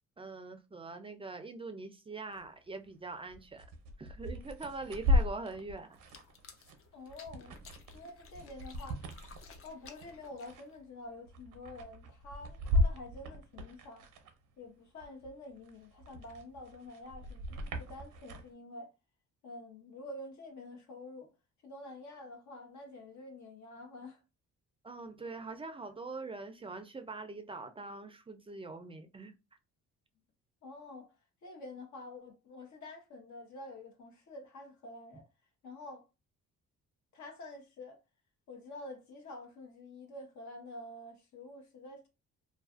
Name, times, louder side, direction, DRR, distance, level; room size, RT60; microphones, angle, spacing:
voice 1, 0.2-3.7 4.0-6.0 24.8-29.3, right 3 dB, 20° right, 0.4 m, -43 dB
sound 1, 2.3-2.5 2.9-14.6 15.0-18.5, left 1 dB, 85° right, 0.6 m, -36 dB
sound 2, 5.9-10.8, left 5 dB, 45° left, 0.6 m, -56 dB
voice 2, 6.9-7.6 7.9-9.0 9.6-14.0 14.6-18.9 19.4-21.3 21.6-24.2 30.6-31.1 31.4-35.2 35.6-36.0 37.1-38.0 38.5-42.1, left 2 dB, 70° left, 0.9 m, -48 dB
2.4 x 2.3 x 2.4 m
cardioid pair, 90°, 30 cm